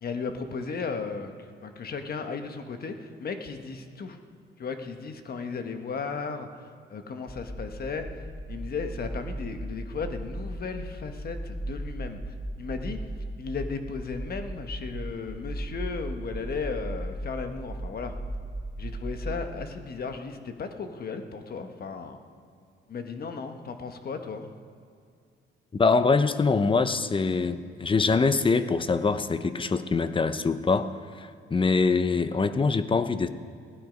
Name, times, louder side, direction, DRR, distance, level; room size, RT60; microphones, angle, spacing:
voice 1, 0.0-1.3 1.6-4.2 4.6-6.5 6.9-12.2 12.6-13.0 13.4-18.1 18.8-22.2 22.9-24.5, left 5 dB, 50° left, 6 dB, 1.3 m, -35 dB
sound 1, 7.3-19.4, right 1 dB, 5° right, 4.4 m, -37 dB
voice 2, 25.7-33.3, left 4 dB, 25° left, 12 dB, 0.8 m, -24 dB
16.5 x 11.5 x 5.2 m, 2.3 s
cardioid pair, 90°, 20 cm